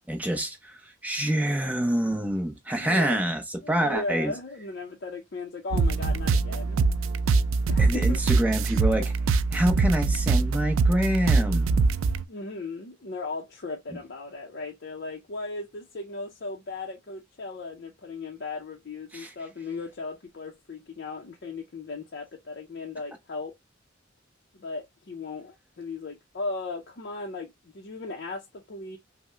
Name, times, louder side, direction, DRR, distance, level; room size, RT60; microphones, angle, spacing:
voice 1, 0.1-4.3 7.8-9.1 9.5-11.7 19.1-19.3, right 1 dB, 10° right, 0.7 m, -26 dB
voice 2, 2.8-3.2 3.6-6.8 7.7-8.2 8.5-8.8 12.3-23.5 24.5-29.0, left 3 dB, 55° left, 0.5 m, -37 dB
sound 1, 5.7-12.2, right 4 dB, 90° right, 0.3 m, -23 dB
5.4 x 2.0 x 2.2 m
head